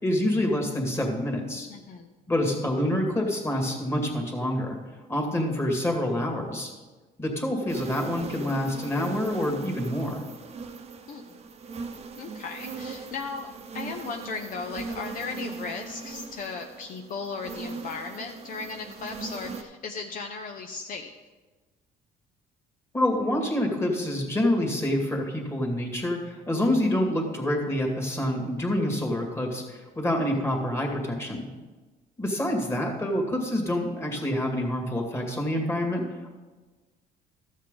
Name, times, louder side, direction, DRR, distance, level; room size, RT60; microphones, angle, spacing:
voice 1, 0.0-1.7 2.3-4.8 5.1-6.7 7.2-10.2 22.9-31.5 32.2-36.0, left 1 dB, 15° left, 0 dB, 2.1 m, -27 dB
voice 2, 1.7-2.1 11.1-11.4 12.2-21.1, left 4 dB, 55° left, 4 dB, 0.7 m, -36 dB
sound 1, 7.7-19.6, right 4 dB, 40° right, 0.9 m, -39 dB
13.0 x 7.4 x 3.8 m, 1.3 s
cardioid pair, 110°, 17 cm